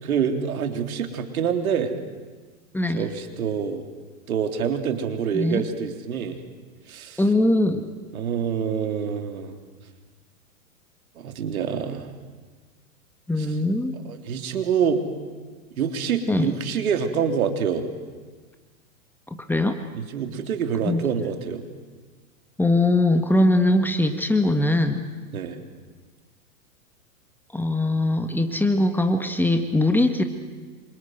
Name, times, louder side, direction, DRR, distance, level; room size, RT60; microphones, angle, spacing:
voice 1, 0.0-1.9 2.9-3.8 4.3-6.4 6.9-7.2 8.1-9.6 11.2-12.1 14.0-15.1 15.8-17.9 19.9-21.6 25.3-25.6, right 7 dB, 70° right, 6 dB, 3.6 m, -26 dB
voice 2, 2.7-3.1 5.3-5.6 7.2-7.9 13.3-14.0 16.3-16.5 19.3-19.8 20.8-21.0 22.6-25.0 27.5-30.2, left 1 dB, 5° left, 7 dB, 1.7 m, -21 dB
27.5 x 25.5 x 8.1 m, 1.4 s
hypercardioid pair, 115°, 44 cm